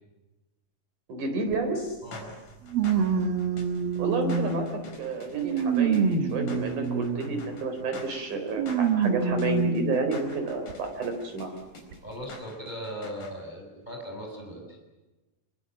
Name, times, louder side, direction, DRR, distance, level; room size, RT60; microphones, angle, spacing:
voice 1, 1.1-1.8 4.0-4.7 5.0-11.6 14.5-14.6, right 3 dB, 60° right, 5 dB, 5.6 m, -30 dB
sound 1, 1.5-1.6 2.7-4.8 5.3-7.4 8.6-10.0 10.7-10.8 11.9-12.0, right 6 dB, 90° right, 3.5 m, -26 dB
sound 2, 1.8-13.3, left 2 dB, 65° left, 5.8 m, -46 dB
voice 2, 12.0-14.8, equal, 10° right, 1 dB, 5.8 m, -38 dB
26.5 x 22.5 x 7.6 m, 1.1 s
omnidirectional pair, 4.0 m